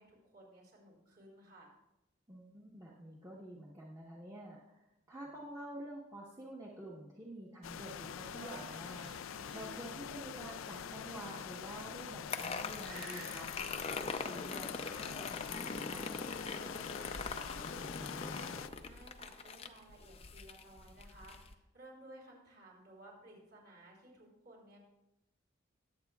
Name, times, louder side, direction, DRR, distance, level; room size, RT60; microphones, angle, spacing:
voice 1, 0.0-1.7 17.2-24.8, right 1 dB, 50° right, -3 dB, 4.2 m, -57 dB
voice 2, 2.3-4.8 5.1-16.4, right 1 dB, 15° right, -4 dB, 1.1 m, -49 dB
sound 1, 7.6-18.7, left 8 dB, 90° left, 0.4 m, -45 dB
sound 2, 8.2-9.9 10.8-11.6 12.2-12.6 12.8-13.4 14.8-15.5, right 3 dB, 80° right, 3.5 m, -53 dB
sound 3, 12.3-21.5, left 4 dB, 30° left, 0.5 m, -42 dB
20.5 x 8.1 x 2.4 m, 0.90 s
head